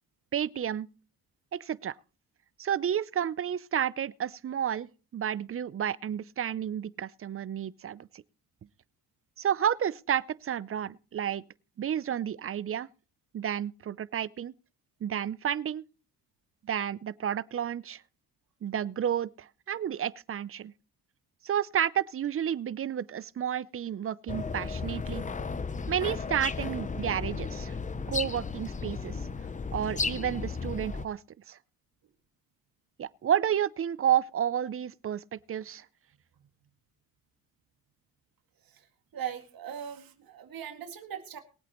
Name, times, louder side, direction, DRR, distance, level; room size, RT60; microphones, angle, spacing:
voice 1, 0.3-0.9 1.5-1.9 2.6-8.2 9.4-11.4 11.8-12.9 13.3-14.5 15.0-15.8 16.6-18.0 18.6-20.7 21.4-25.2 25.9-27.7 28.1-29.2 29.7-31.2 31.5-31.6 33.0-35.8, right 9 dB, 35° right, 0.5 m, -31 dB
sound 1, 24.3-31.1, left 4 dB, 20° left, 0.7 m, -34 dB
voice 2, 39.1-41.4, right 9 dB, 70° right, 2.2 m, -39 dB
22.0 x 8.2 x 3.0 m
cardioid pair, 95°, 37 cm